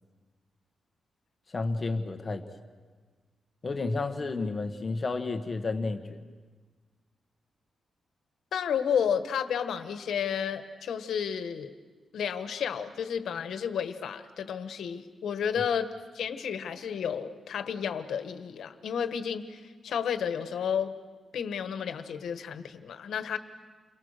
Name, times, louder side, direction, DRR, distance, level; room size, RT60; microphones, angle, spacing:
voice 1, 1.5-2.4 3.6-6.3, left 3 dB, 25° left, 7 dB, 1.3 m, -31 dB
voice 2, 8.5-11.7 12.1-20.9 21.3-23.4, left 7 dB, 90° left, 9 dB, 1.3 m, -32 dB
29.5 x 23.0 x 6.6 m, 1.4 s
wide cardioid pair, 165°, 0 cm